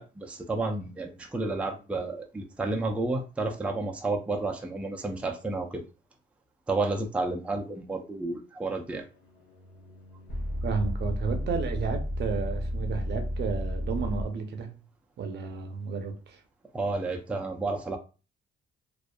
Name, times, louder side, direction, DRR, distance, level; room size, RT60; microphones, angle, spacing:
voice 1, 0.0-5.8 6.7-9.1 16.7-18.0, right 3 dB, 5° right, 0.4 m, -31 dB
sound 1, 8.7-14.2, equal, 60° left, 0.8 m, -33 dB
voice 2, 10.6-14.8 15.2-16.4, right 5 dB, 60° right, 0.6 m, -32 dB
2.4 x 2.3 x 2.2 m
cardioid pair, 90°, 20 cm